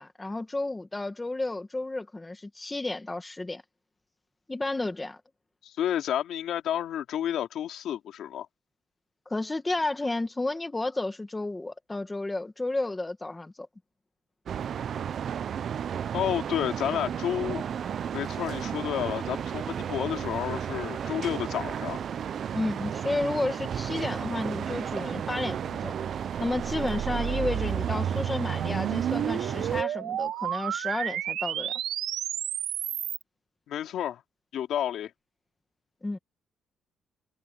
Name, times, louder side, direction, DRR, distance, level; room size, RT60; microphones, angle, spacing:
voice 1, 0.0-3.6 4.5-5.2 9.3-13.7 22.5-25.9 26.4-31.7 36.0-36.2, left 2 dB, 10° left, 1.3 m, -32 dB
voice 2, 5.6-8.5 16.1-17.6 18.1-22.0 33.7-34.2 34.5-35.1, left 10 dB, 65° left, 3.3 m, -30 dB
sound 1, 14.5-29.8, right 8 dB, 45° right, 0.4 m, -33 dB
sound 2, 26.5-33.2, right 11 dB, 70° right, 2.9 m, -32 dB
cardioid pair, 170°, 0 cm